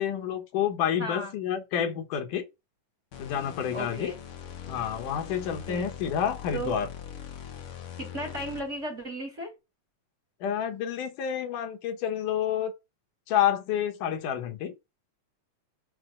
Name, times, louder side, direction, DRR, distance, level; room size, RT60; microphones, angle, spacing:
voice 1, 0.0-2.5 3.2-4.1 4.7-6.9 10.4-12.7 13.3-14.7, left 9 dB, 75° left, 2.7 m, -29 dB
voice 2, 1.0-1.3 3.7-4.2 5.7-5.9 6.5-6.8 8.0-9.5, equal, 25° right, 2.3 m, -35 dB
sound 1, 3.1-8.9, left 9 dB, 60° left, 1.7 m, -42 dB
6.0 x 5.6 x 6.3 m
omnidirectional pair, 3.7 m